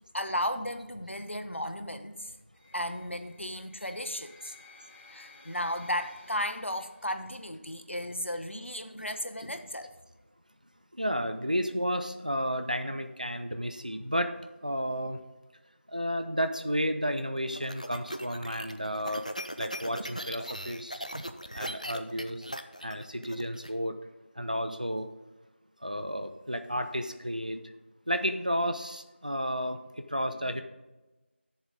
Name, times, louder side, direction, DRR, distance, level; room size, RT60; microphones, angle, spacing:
voice 1, 0.1-2.3 2.7-4.5 5.1-9.9, equal, 80° left, 8 dB, 1.1 m, -34 dB
sound 1, 2.5-7.6, left 3 dB, 10° right, 2.2 m, -56 dB
voice 2, 11.0-14.3 14.6-15.2 15.9-19.2 19.6-21.0 21.5-22.4 22.8-23.9 24.4-25.1 25.8-27.6 28.1-29.8 30.1-30.6, equal, 40° right, 8 dB, 0.7 m, -32 dB
sound 2, 17.2-23.7, equal, 35° left, 0.5 m, -39 dB
12.0 x 7.1 x 3.9 m, 1.1 s
figure-of-eight pair, 180°, 6 cm